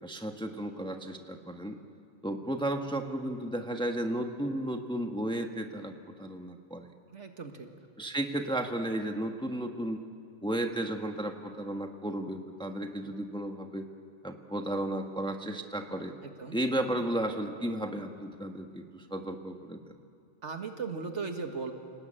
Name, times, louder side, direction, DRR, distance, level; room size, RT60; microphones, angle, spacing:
voice 1, 0.0-1.8 2.2-6.9 8.0-10.0 10.4-13.9 14.2-16.1 16.5-19.9, right 1 dB, 5° left, 4 dB, 1.2 m, -34 dB
voice 2, 7.1-7.7 16.2-16.6 20.4-21.7, right 4 dB, 65° right, 5 dB, 2.0 m, -37 dB
29.0 x 18.5 x 8.9 m, 2.4 s
omnidirectional pair, 1.3 m